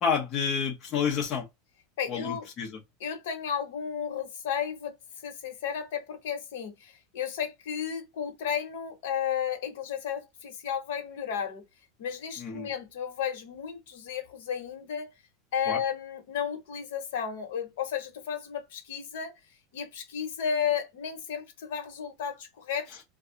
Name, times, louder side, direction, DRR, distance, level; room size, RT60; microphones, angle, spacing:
voice 1, 0.0-1.4 2.1-2.7 12.4-12.7 15.7-15.8, left 6 dB, 30° left, 0.8 m, -29 dB
voice 2, 2.0-2.5 3.0-5.0 5.2-11.6 12.0-15.1 15.5-19.3 19.7-22.9, left 8 dB, 75° left, 1.1 m, -33 dB
2.6 x 2.3 x 3.6 m
supercardioid pair, 165°, 0 cm